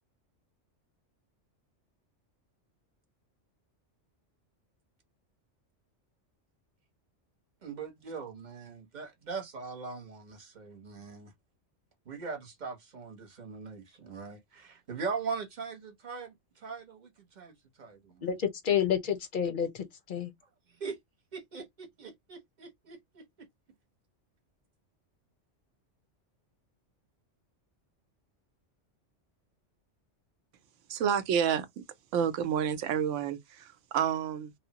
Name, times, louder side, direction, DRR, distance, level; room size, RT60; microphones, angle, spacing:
voice 1, 7.6-11.3 12.0-18.3 20.7-21.0 21.3-23.5, right 5 dB, 40° right, 0.9 m, -41 dB
voice 2, 18.2-20.3, left 8 dB, 55° left, 0.6 m, -29 dB
voice 3, 30.9-31.8 32.1-34.5, right 8 dB, 90° right, 0.9 m, -29 dB
3.1 x 2.0 x 2.7 m
omnidirectional pair, 1.2 m